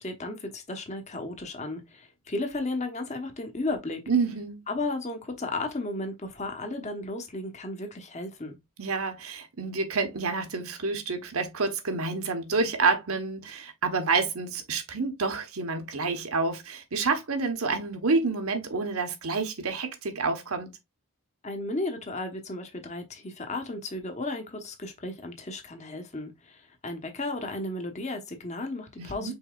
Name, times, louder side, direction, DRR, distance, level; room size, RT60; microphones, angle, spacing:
voice 1, 0.0-4.0 4.7-8.6 21.4-29.3, left 2 dB, 30° left, 1.0 m, -34 dB
voice 2, 4.1-4.6 8.8-20.7 29.0-29.3, right 4 dB, 75° right, 1.1 m, -28 dB
5.5 x 4.1 x 2.4 m
head